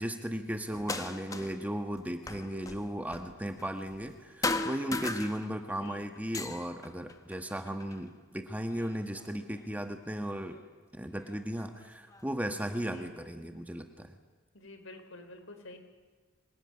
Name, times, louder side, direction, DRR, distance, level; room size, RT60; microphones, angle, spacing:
voice 1, 0.0-10.6 10.9-14.1, equal, 10° right, 6 dB, 1.5 m, -36 dB
sound 1, 0.7-1.7 1.9-4.2 4.4-5.8 6.2-8.0 8.7-9.6 10.5-10.6 11.3-12.3, left 3 dB, 15° left, 1.1 m, -38 dB
voice 2, 14.5-15.8, left 2 dB, 75° left, 7 dB, 3.8 m, -48 dB
25.0 x 20.0 x 9.8 m, 1.5 s
head